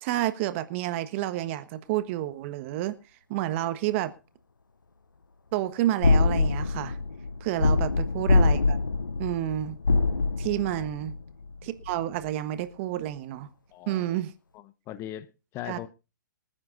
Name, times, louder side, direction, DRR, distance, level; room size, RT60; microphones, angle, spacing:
voice 1, 0.0-3.0 3.3-4.1 5.5-7.0 7.4-8.8 9.2-9.8 10.4-11.1 11.6-13.5 13.9-14.3 15.7-15.8, right 14 dB, 40° right, 1.4 m, -29 dB
sound 1, 6.0-11.6 11.8-12.2, left 3 dB, 85° left, 0.8 m, -24 dB
voice 2, 13.7-14.2 14.5-15.9, left 12 dB, 25° left, 1.0 m, -40 dB
27.0 x 9.8 x 2.6 m
figure-of-eight pair, 120°, 11 cm